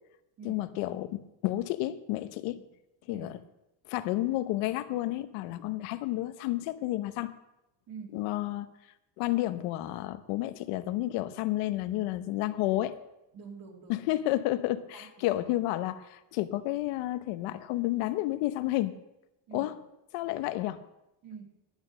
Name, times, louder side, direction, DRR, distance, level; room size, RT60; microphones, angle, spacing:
voice 1, 0.4-2.6 3.1-3.3 3.9-7.3 8.1-8.7 9.2-13.0 13.9-19.0 19.5-19.7 20.1-20.8, left 16 dB, 90° left, 12 dB, 1.0 m, -31 dB
voice 2, 7.9-8.2 13.3-14.1 14.9-15.4 19.5-19.7 21.2-21.4, right 5 dB, 45° right, 0 dB, 2.6 m, -46 dB
11.0 x 8.2 x 6.5 m, 0.91 s
cardioid pair, 135°, 49 cm